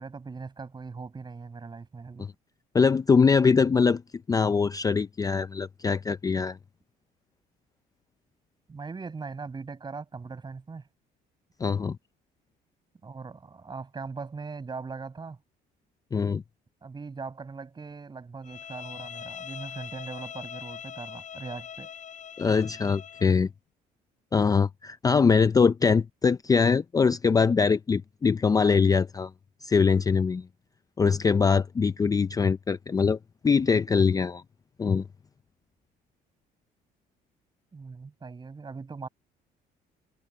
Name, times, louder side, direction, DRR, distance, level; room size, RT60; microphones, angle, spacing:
voice 1, 0.0-2.3 8.7-10.8 13.0-15.4 16.8-21.9 37.7-39.1, right 4 dB, 25° right, 7.9 m, -40 dB
voice 2, 2.7-4.0 4.3-6.6 11.6-12.0 16.1-16.4 22.4-23.5 24.3-29.3 29.6-30.5 31.0-33.2 33.4-34.4 34.8-35.0, left 5 dB, 20° left, 0.5 m, -23 dB
Bowed string instrument, 18.4-23.3, left 8 dB, 45° left, 5.3 m, -42 dB
cardioid pair, 110°, 17 cm